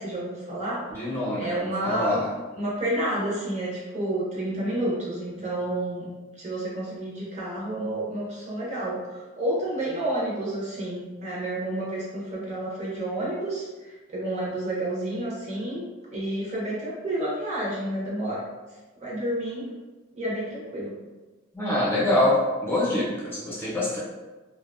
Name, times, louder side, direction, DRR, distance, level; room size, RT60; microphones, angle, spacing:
voice 1, 0.0-0.8 1.4-2.2 2.5-6.1 6.4-13.7 14.1-18.4 19.0-19.7 20.2-20.9, right 1 dB, 35° right, -6 dB, 0.6 m, -30 dB
voice 2, 0.9-2.3 21.5-24.0, left 1 dB, 10° left, -8 dB, 0.7 m, -25 dB
2.6 x 2.1 x 2.4 m, 1.2 s
head